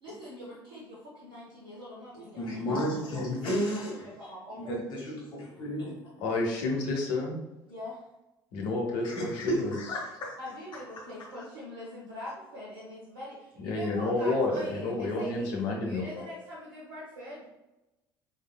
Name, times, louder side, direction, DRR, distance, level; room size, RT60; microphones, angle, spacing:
voice 1, 0.0-3.6 3.9-4.7 7.7-8.1 10.4-15.5 15.8-17.5, left 1 dB, 75° right, -7 dB, 1.0 m, -43 dB
voice 2, 2.1-4.1 4.5-6.1 9.0-10.4, equal, 40° left, -5 dB, 1.4 m, -32 dB
voice 3, 6.2-7.4 8.5-9.7 13.6-16.3, left 2 dB, 60° left, 0 dB, 1.0 m, -30 dB
4.3 x 3.6 x 2.2 m, 0.99 s
figure-of-eight pair, 60°, 12 cm